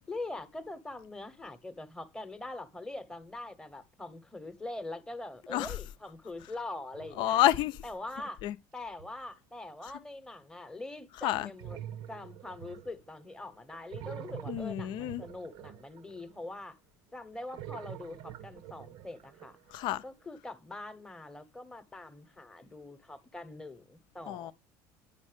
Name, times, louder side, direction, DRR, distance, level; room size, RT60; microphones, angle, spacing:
voice 1, 0.1-7.4 7.8-8.4 8.7-11.8 12.1-16.8 17.1-19.6 20.0-24.5, left 2 dB, 5° left, 0.9 m, -43 dB
sound 1, 6.9-8.3 8.8-9.3 11.6-13.3 13.7-16.6 17.3-19.9, right 11 dB, 60° right, 0.7 m, -46 dB
voice 2, 7.2-7.8 8.4-8.6 11.2-11.5 14.5-15.2 19.7-20.0 24.3-24.5, left 13 dB, 60° left, 0.5 m, -29 dB
9.7 x 5.4 x 4.9 m
supercardioid pair, 115°, 9 cm